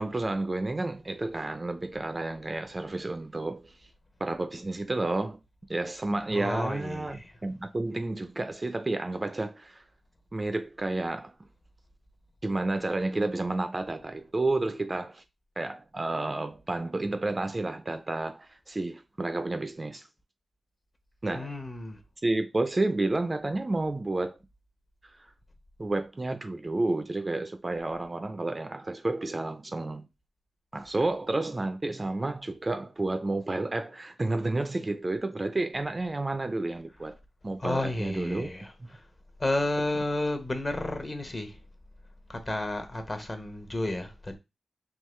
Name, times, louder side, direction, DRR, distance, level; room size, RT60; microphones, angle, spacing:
voice 1, 0.0-3.8 4.2-5.4 5.7-9.8 10.3-11.3 12.4-15.2 15.6-20.1 21.2-21.5 22.2-24.4 25.8-30.1 30.7-37.2 37.4-38.5 38.8-38.9, right 2 dB, 30° right, 0.4 m, -30 dB
voice 2, 6.3-7.3 21.3-22.0 37.6-39.0 39.4-41.6 42.3-44.4, left 2 dB, 30° left, 0.9 m, -32 dB
3.6 x 3.0 x 3.1 m
cardioid pair, 70°, 0 cm